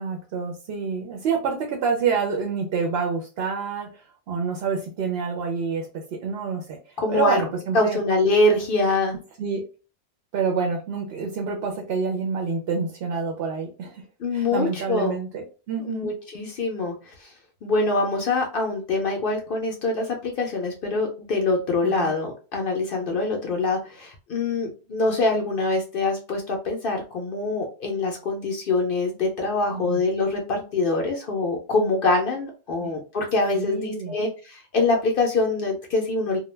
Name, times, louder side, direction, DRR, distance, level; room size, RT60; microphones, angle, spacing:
voice 1, 0.0-8.0 9.4-9.6 10.3-14.1 14.3-16.1 21.8-22.1 29.7-30.0 32.8-32.9 33.5-34.1, right 5 dB, 70° right, 3 dB, 0.7 m, -28 dB
voice 2, 7.0-7.4 7.7-9.2 14.2-15.2 15.9-17.3 17.6-36.4, left 3 dB, 60° left, 1 dB, 0.7 m, -24 dB
2.2 x 2.1 x 3.1 m, 0.34 s
omnidirectional pair, 1.1 m